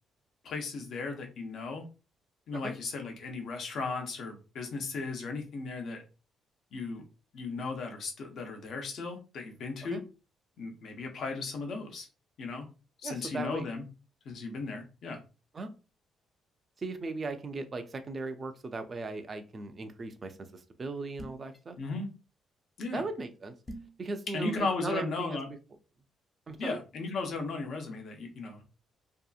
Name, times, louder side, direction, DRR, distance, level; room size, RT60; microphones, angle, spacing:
voice 1, 0.4-1.9 2.5-6.0 6.7-7.0 7.3-10.0 10.6-12.1 12.4-12.6 13.0-13.8 14.2-15.2 21.8-22.1 22.8-23.0 24.3-25.5 26.6-28.6, left 3 dB, 65° left, 4 dB, 0.7 m, -36 dB
voice 2, 13.0-13.7 15.5-15.7 16.8-21.8 22.9-23.5 24.0-25.4 26.5-26.8, right 3 dB, 35° right, 8 dB, 0.4 m, -38 dB
sound 1, 21.2-21.6 23.7-24.0, right 1 dB, 20° left, 0.6 m, -44 dB
2.7 x 2.4 x 2.4 m, 0.32 s
cardioid pair, 90°, 0 cm